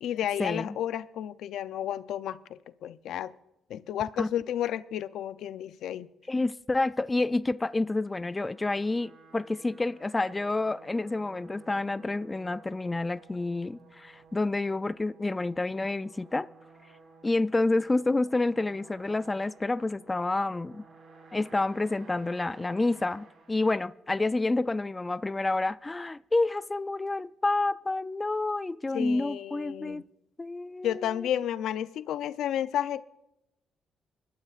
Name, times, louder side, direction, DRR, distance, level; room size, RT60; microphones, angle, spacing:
voice 1, 0.0-3.3 3.7-6.1 28.9-30.0 30.8-33.0, left 10 dB, 80° left, 0.5 m, -32 dB
voice 2, 6.3-16.5 17.2-20.8 21.3-30.0 30.4-31.0, left 2 dB, 20° left, 0.3 m, -29 dB
sound 1, 8.0-24.3, right 4 dB, 60° right, 4.9 m, -55 dB
23.5 x 12.5 x 2.5 m
cardioid pair, 90°, 0 cm